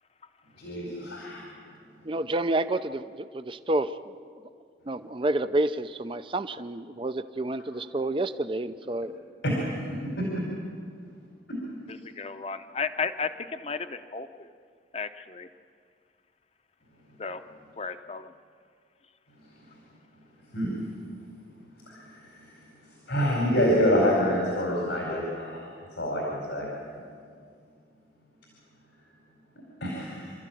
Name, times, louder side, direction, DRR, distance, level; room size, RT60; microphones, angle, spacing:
voice 1, 0.6-1.4 9.4-9.8 10.2-10.3 20.5-20.7 21.8-22.1 22.3-22.4 23.1-25.6 26.0-26.7 29.8-30.3, equal, 90° left, -2 dB, 4.6 m, -26 dB
voice 2, 2.0-4.0 4.9-9.1, right 1 dB, 30° right, 11 dB, 0.5 m, -29 dB
voice 3, 11.9-14.5 14.9-15.5 17.2-17.4 17.8-18.3, left 5 dB, 35° left, 10 dB, 0.8 m, -34 dB
27.5 x 13.5 x 9.1 m, 2.1 s
head